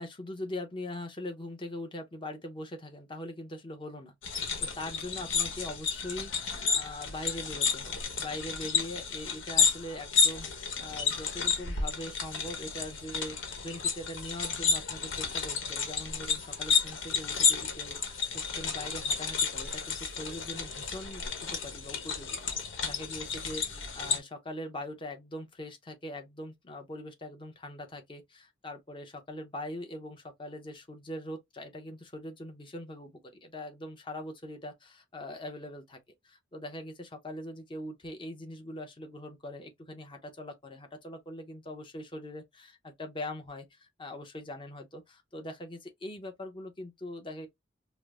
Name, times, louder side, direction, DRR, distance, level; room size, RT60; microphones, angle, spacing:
voice 1, 0.0-22.4 22.8-36.0 36.2-47.5, left 1 dB, 25° left, 0.8 m, -42 dB
sound 1, 4.2-24.2, left 5 dB, 85° left, 1.1 m, -31 dB
5.1 x 2.1 x 2.4 m
head